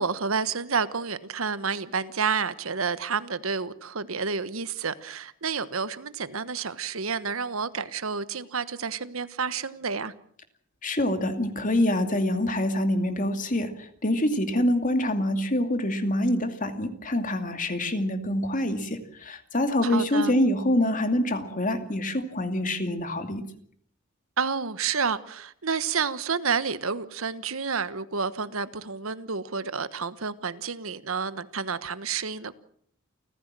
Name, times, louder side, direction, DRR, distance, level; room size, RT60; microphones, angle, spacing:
voice 1, 0.0-10.1 19.8-20.4 24.4-32.6, right 5 dB, 85° right, 14 dB, 1.2 m, -30 dB
voice 2, 10.8-13.7 14.0-23.4, left 1 dB, 40° left, 8 dB, 2.5 m, -25 dB
29.0 x 15.0 x 7.6 m, 0.64 s
head